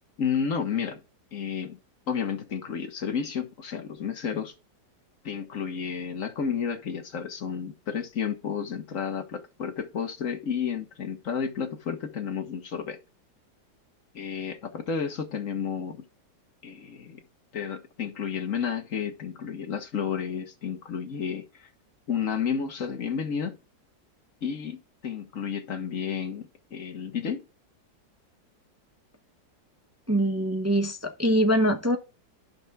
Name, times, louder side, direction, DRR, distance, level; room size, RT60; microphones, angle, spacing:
voice 1, 0.2-1.0 1.3-1.8 2.1-4.5 5.2-13.0 14.1-16.0 16.6-17.2 17.5-21.7 22.1-23.6 24.4-27.4, left 7 dB, 45° left, 1.8 m, -31 dB
voice 2, 30.1-32.0, equal, 25° right, 0.3 m, -23 dB
14.0 x 5.9 x 2.4 m
omnidirectional pair, 2.0 m